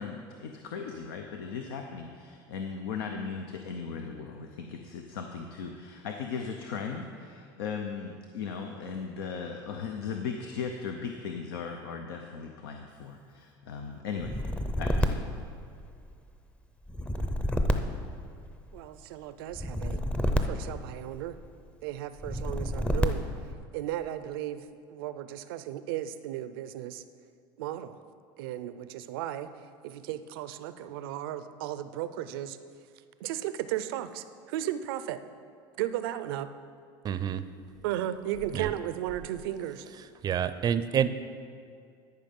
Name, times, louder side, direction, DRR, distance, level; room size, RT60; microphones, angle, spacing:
voice 1, 0.0-14.4 14.8-15.4, left 6 dB, 90° left, 4 dB, 0.7 m, -37 dB
sound 1, 14.2-16.2 16.9-18.8 19.5-21.4 22.2-23.5, equal, 10° left, 0.6 m, -29 dB
voice 2, 18.7-20.0 20.4-21.4 21.8-23.3 23.7-24.6 24.9-27.0 27.6-28.0 28.4-29.5 29.8-32.6 33.2-35.2 35.8-36.5 37.8-39.9, right 12 dB, 85° right, 12 dB, 0.5 m, -35 dB
voice 3, 37.0-37.4 38.5-38.7 40.2-41.1, right 9 dB, 35° right, 13 dB, 0.5 m, -27 dB
13.0 x 5.4 x 5.4 m, 2.2 s
supercardioid pair, 115°, 12 cm